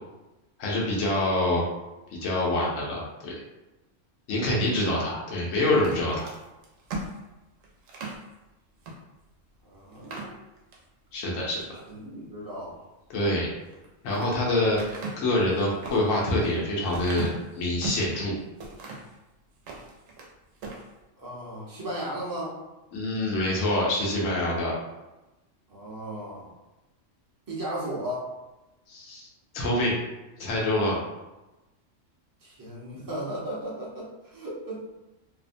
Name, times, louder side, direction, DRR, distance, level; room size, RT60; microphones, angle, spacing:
voice 1, 0.6-1.6 2.1-3.3 4.3-6.3 11.1-11.8 13.1-13.5 14.0-18.4 22.9-24.7 28.9-29.3 29.5-29.9 30.4-31.0, left 1 dB, 85° left, -4 dB, 1.0 m, -26 dB
sound 1, 5.7-8.2 8.8-9.0 9.4-9.5 9.9-10.9 11.3-11.8 13.6-14.3 14.8-18.1 18.6-19.1 19.5-20.3 20.6-20.9, right 2 dB, 80° right, 1.0 m, -38 dB
voice 2, 9.6-10.3 11.9-12.8 21.2-22.6 25.7-26.5 27.5-28.3 32.4-34.8, right 1 dB, 20° right, -6 dB, 0.6 m, -35 dB
2.8 x 2.0 x 2.6 m, 1.0 s
omnidirectional pair, 1.3 m